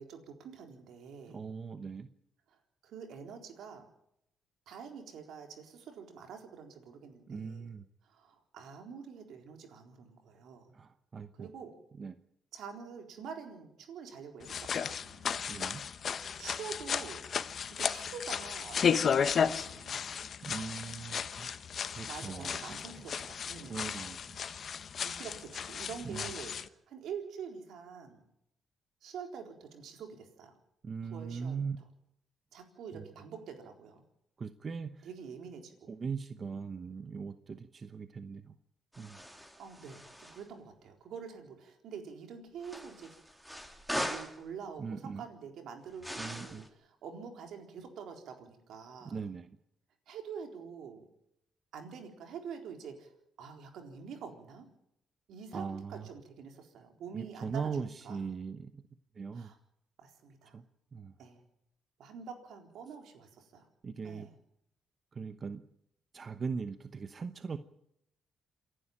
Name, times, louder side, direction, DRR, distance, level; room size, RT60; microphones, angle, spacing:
voice 1, 0.0-1.4 2.5-3.9 4.7-7.7 8.0-10.7 11.4-11.8 12.5-15.4 16.4-17.2 17.7-20.1 22.1-24.1 25.0-28.2 29.0-30.5 31.0-31.6 32.5-34.0 35.0-35.9 36.4-36.5 39.6-43.1 44.1-49.2 50.1-51.1 51.7-53.1 53.4-54.7 55.3-58.2 59.3-59.6 60.0-60.6 61.2-61.4 62.0-63.7 64.0-64.3, right 6 dB, 75° right, 4 dB, 4.0 m, -46 dB
voice 2, 1.3-2.1 7.3-7.9 10.7-11.5 12.0-12.1 15.5-15.9 20.4-21.6 21.9-22.6 23.7-24.4 26.0-26.3 30.8-31.8 32.9-33.0 34.4-35.1 35.9-38.6 39.0-39.2 44.8-45.2 46.2-46.7 49.0-49.5 55.5-56.1 57.1-58.8 59.1-59.5 60.5-60.6 60.9-61.1 63.8-64.3 65.1-65.6 66.1-67.6, right 5 dB, 40° right, 10 dB, 0.9 m, -40 dB
sound 1, 14.4-26.7, left 7 dB, 55° left, 1.0 m, -34 dB
sound 2, 38.9-40.4 42.6-44.4 46.0-46.7, equal, ahead, 3.1 m, -40 dB
27.5 x 11.5 x 8.8 m, 0.79 s
cardioid pair, 90°, 0 cm